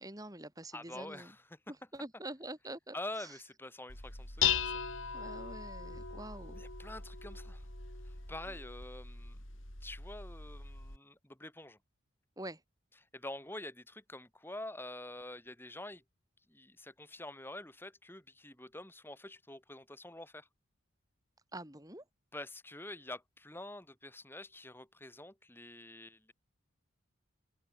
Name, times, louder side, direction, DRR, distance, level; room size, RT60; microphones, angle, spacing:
voice 1, 0.0-1.3 1.7-3.3 5.1-6.6 8.5-8.6 12.4-12.6 21.5-22.0, right 1 dB, 15° right, 5.7 m, -46 dB
voice 2, 0.7-1.6 2.9-4.7 6.6-7.7 8.0-9.4 9.8-11.8 13.1-16.0 16.5-20.5 22.3-26.3, left 1 dB, 10° left, 3.4 m, -47 dB
Dishes pots and pans, 3.9-11.0, left 8 dB, 75° left, 7.5 m, -38 dB
head